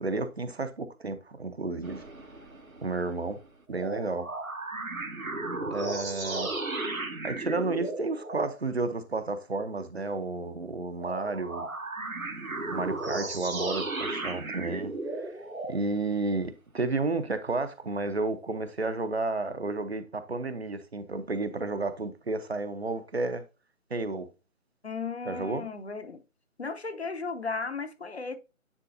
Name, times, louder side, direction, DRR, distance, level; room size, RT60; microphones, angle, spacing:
voice 1, 0.0-2.0 2.8-3.4 3.7-4.3 5.7-6.5 7.2-11.7 12.7-15.3 15.7-23.4 23.9-24.3 25.2-25.7, right 3 dB, 50° right, 0.8 m, -32 dB
sound 1, 1.8-3.5 3.7-8.6 11.0-15.8, right 2 dB, 75° right, 1.5 m, -35 dB
voice 2, 24.8-26.2 26.6-28.4, left 4 dB, 50° left, 0.8 m, -35 dB
9.8 x 3.8 x 2.6 m
figure-of-eight pair, 155°, 42 cm